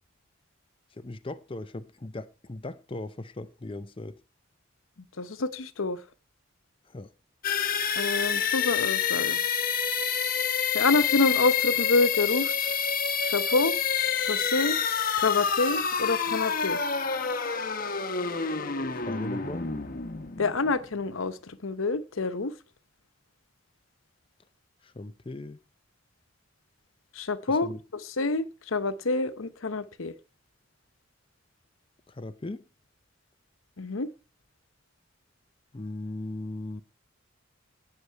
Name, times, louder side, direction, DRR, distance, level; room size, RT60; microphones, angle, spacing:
voice 1, 0.9-4.2 6.8-7.1 18.9-19.7 24.8-25.6 27.5-27.8 32.1-32.6 35.7-36.8, left 2 dB, 25° left, 0.6 m, -38 dB
voice 2, 5.2-6.0 8.0-9.4 10.7-12.7 13.2-13.8 14.2-14.8 15.1-16.8 20.4-22.5 27.1-27.7 28.2-30.1 33.8-34.1, left 3 dB, 80° left, 0.9 m, -27 dB
sound 1, 7.4-21.1, left 7 dB, 45° left, 1.0 m, -28 dB
18.0 x 6.8 x 4.5 m
head